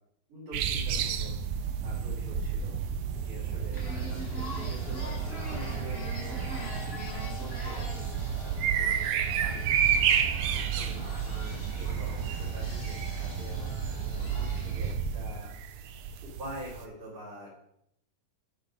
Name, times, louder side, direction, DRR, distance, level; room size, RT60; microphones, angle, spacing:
voice 1, 0.3-1.3 1.8-2.7 3.2-9.8 10.5-15.5 16.4-17.6, equal, 50° right, -9 dB, 3.6 m, -46 dB
sound 1, 0.5-16.8, right 7 dB, 90° right, 2.2 m, -31 dB
sound 2, 2.2-15.1, left 2 dB, 35° left, 2.3 m, -49 dB
sound 3, 3.7-14.9, equal, 90° left, 0.5 m, -44 dB
7.2 x 4.0 x 5.2 m, 0.75 s
omnidirectional pair, 3.8 m